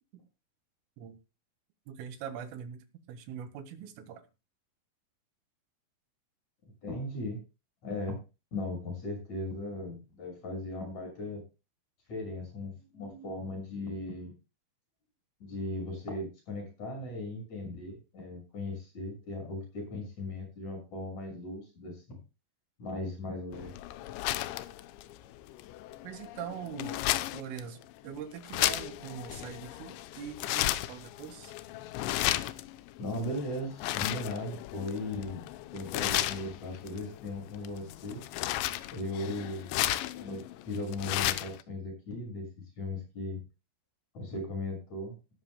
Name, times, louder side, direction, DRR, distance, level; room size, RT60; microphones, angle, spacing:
voice 1, 1.9-4.2 26.0-27.1 27.3-31.5, right 8 dB, 80° right, 8 dB, 4.1 m, -42 dB
voice 2, 6.8-7.4 7.8-8.2 8.5-11.4 12.1-14.3 15.4-22.2 22.8-23.7 33.0-35.5 35.7-38.2 38.9-39.8 40.1-42.5 42.8-43.4 44.1-45.2, left 2 dB, 35° left, 3 dB, 7.5 m, -37 dB
sound 1, 23.5-41.6, left 15 dB, 80° left, 2.7 m, -34 dB
18.5 x 13.0 x 2.2 m, 0.30 s
omnidirectional pair, 5.9 m